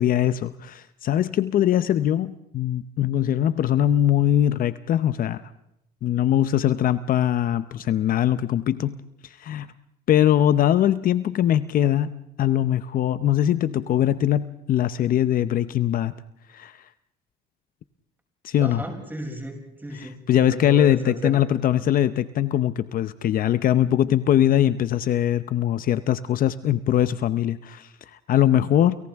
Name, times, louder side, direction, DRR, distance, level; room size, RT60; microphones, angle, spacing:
voice 1, 0.0-5.4 6.0-9.7 10.1-16.1 16.5-16.8 18.4-18.8 19.9-29.0, left 11 dB, 55° left, 13 dB, 0.8 m, -22 dB
voice 2, 18.6-21.4, right 1 dB, 10° right, 1 dB, 6.5 m, -34 dB
30.0 x 29.0 x 3.6 m, 0.81 s
cardioid pair, 110°, 17 cm